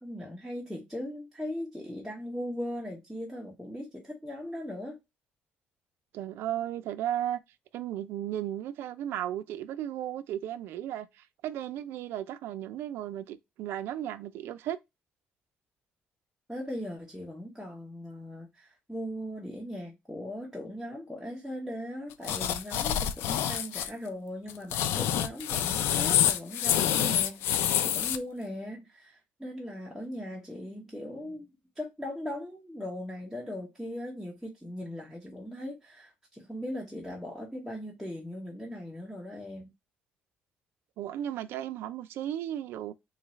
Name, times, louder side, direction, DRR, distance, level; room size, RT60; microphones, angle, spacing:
voice 1, 0.0-5.0 16.5-39.7, left 1 dB, 5° left, 0.8 m, -39 dB
voice 2, 6.1-7.4 7.7-14.8 41.0-42.9, right 11 dB, 75° right, 0.4 m, -35 dB
sound 1, 22.2-23.9 24.5-28.2, left 10 dB, 85° left, 0.4 m, -27 dB
3.9 x 2.4 x 3.0 m
cardioid pair, 145°, 4 cm